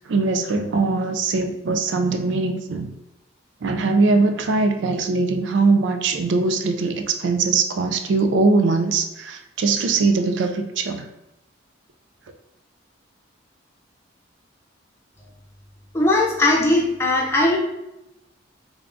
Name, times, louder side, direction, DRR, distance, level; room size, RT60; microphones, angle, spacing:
voice 1, 0.1-2.9 3.6-11.1, right 3 dB, 70° right, 6 dB, 0.4 m, -21 dB
voice 2, 15.9-17.6, left 2 dB, 15° left, -3 dB, 0.6 m, -19 dB
3.4 x 3.4 x 2.5 m, 0.89 s
head